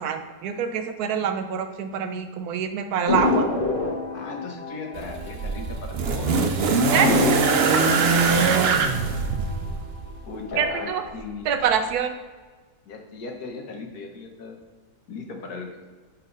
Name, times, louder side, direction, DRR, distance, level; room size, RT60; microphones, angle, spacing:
voice 1, 0.0-3.5 6.9-7.1 10.6-11.0 11.5-12.1, right 7 dB, 75° right, 7 dB, 1.1 m, -25 dB
sound 1, 3.1-6.1 6.4-6.5 7.0-10.0 10.4-11.0, left 3 dB, 40° left, 1.1 m, -28 dB
voice 2, 4.1-7.2 7.7-8.5 8.8-8.9 10.3-11.5 12.9-14.6 15.1-15.9, left 4 dB, 75° left, 2 dB, 1.6 m, -37 dB
sound 2, 4.9-10.2 11.2-11.3, right 4 dB, 60° right, 0.6 m, -22 dB
5.9 x 4.2 x 5.1 m, 1.4 s
omnidirectional pair, 1.7 m